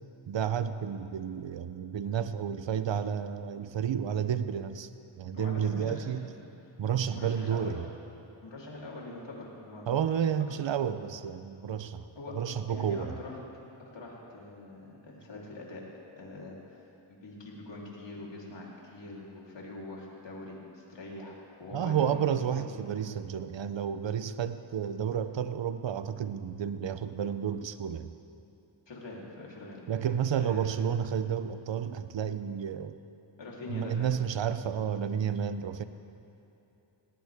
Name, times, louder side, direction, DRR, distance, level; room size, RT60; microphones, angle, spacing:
voice 1, 0.3-4.9 5.2-6.3 6.8-7.8 9.9-12.1 12.3-13.1 21.7-28.1 29.9-33.0 33.7-35.8, right 8 dB, 70° right, 12 dB, 0.8 m, -31 dB
voice 2, 5.3-6.3 7.1-7.7 8.4-9.9 12.2-12.4 12.7-13.4 13.9-15.8 16.2-16.8 17.1-22.7 28.9-29.8 30.4-30.6 33.4-34.2, left 2 dB, 65° left, -4 dB, 3.7 m, -43 dB
18.5 x 17.5 x 3.6 m, 2.9 s
cardioid pair, 65°, 47 cm